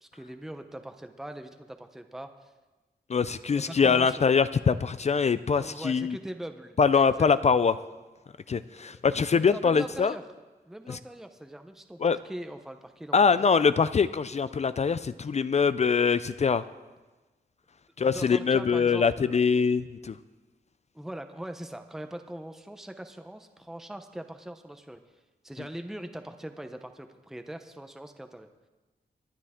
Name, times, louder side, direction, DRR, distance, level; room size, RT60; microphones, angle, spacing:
voice 1, 0.0-2.5 3.5-4.3 5.6-7.6 8.8-9.0 9.3-10.2 10.7-13.6 18.1-19.4 20.9-25.0 25.4-28.5, right 1 dB, ahead, 7 dB, 0.7 m, -41 dB
voice 2, 3.1-6.2 6.8-7.8 8.5-10.1 10.9-11.0 12.0-12.2 13.1-16.6 18.0-20.1, left 5 dB, 40° left, 14 dB, 0.4 m, -23 dB
22.5 x 10.0 x 3.6 m, 1.2 s
wide cardioid pair, 130°, 17 cm